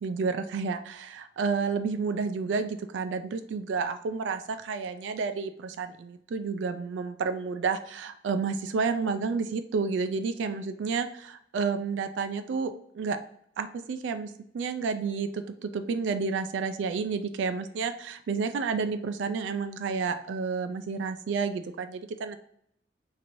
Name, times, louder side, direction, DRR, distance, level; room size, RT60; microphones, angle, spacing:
voice 1, 0.0-13.2 13.6-22.4, right 5 dB, 90° right, 9 dB, 0.3 m, -30 dB
3.0 x 2.6 x 4.2 m, 0.69 s
head